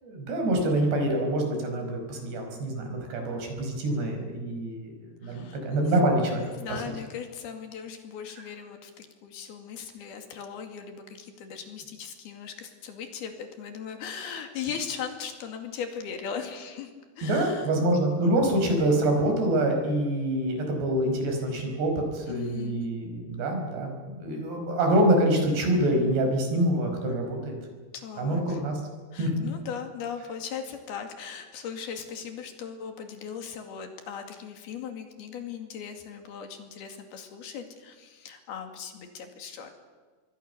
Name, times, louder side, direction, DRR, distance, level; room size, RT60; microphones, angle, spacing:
voice 1, 0.0-6.4 6.7-6.9 17.2-27.6 28.2-28.8 29.2-29.5, right 1 dB, 85° right, 3 dB, 7.1 m, -26 dB
voice 2, 5.2-6.1 6.4-16.9 17.2-17.7 22.3-22.9 27.9-28.6 29.1-39.7, left 7 dB, 70° left, 5 dB, 4.2 m, -38 dB
26.5 x 22.0 x 6.9 m, 1.5 s
omnidirectional pair, 4.7 m